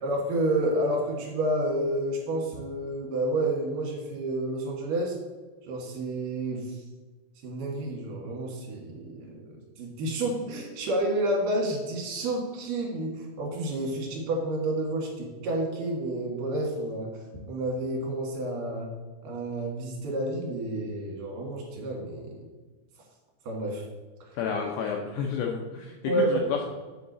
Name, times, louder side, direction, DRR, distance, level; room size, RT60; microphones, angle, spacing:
voice 1, 0.0-5.2 5.7-6.8 7.4-17.1 17.5-18.9 19.2-22.4 23.4-23.8 26.0-26.4, right 1 dB, 55° right, -1 dB, 2.9 m, -30 dB
voice 2, 24.4-26.7, left 6 dB, 80° left, 1 dB, 2.5 m, -30 dB
8.0 x 4.8 x 6.8 m, 1.3 s
omnidirectional pair, 5.6 m